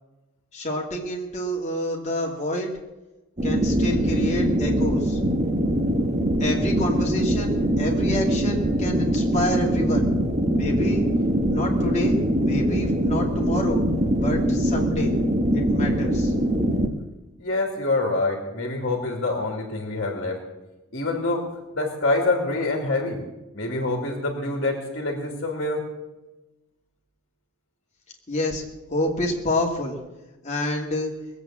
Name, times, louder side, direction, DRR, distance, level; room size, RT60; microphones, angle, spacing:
voice 1, 0.5-2.7 3.4-5.2 6.4-10.0 10.6-11.0 11.5-13.8 14.2-15.1 15.5-16.3 28.3-28.6 28.9-30.0 30.4-31.1, left 1 dB, 30° left, 0 dB, 2.6 m, -28 dB
sound 1, 3.4-16.9, equal, 30° right, 1.2 m, -22 dB
voice 2, 17.4-20.4 20.9-21.4 21.7-23.2 23.5-25.8, left 2 dB, 50° left, 1 dB, 2.5 m, -26 dB
20.5 x 8.2 x 7.5 m, 1.1 s
head